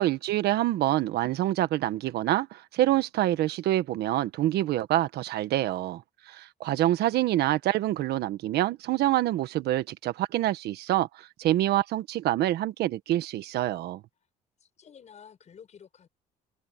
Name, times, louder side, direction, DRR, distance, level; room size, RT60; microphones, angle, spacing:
voice 1, 0.0-14.0, right 14 dB, 75° right, 1.4 m, -26 dB
voice 2, 14.6-16.1, left 7 dB, 40° left, 6.5 m, -51 dB
cardioid pair, 110°, 17 cm